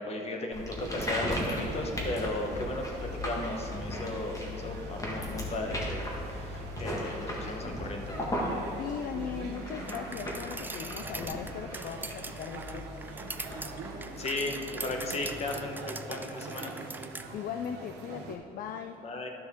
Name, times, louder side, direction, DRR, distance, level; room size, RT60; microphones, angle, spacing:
voice 1, 0.0-8.2 14.2-16.7 19.0-19.3, left 2 dB, 40° left, 3 dB, 1.2 m, -36 dB
sound 1, 0.5-15.1, left 1 dB, 20° left, 1.7 m, -37 dB
sound 2, 0.8-18.4, right 4 dB, 80° right, 1.1 m, -44 dB
voice 2, 8.8-12.9 17.3-19.0, left 8 dB, 55° left, 7 dB, 0.4 m, -38 dB
sound 3, 9.9-17.3, right 3 dB, 10° right, 0.4 m, -42 dB
12.5 x 6.0 x 3.7 m, 2.9 s
cardioid pair, 110°, 17 cm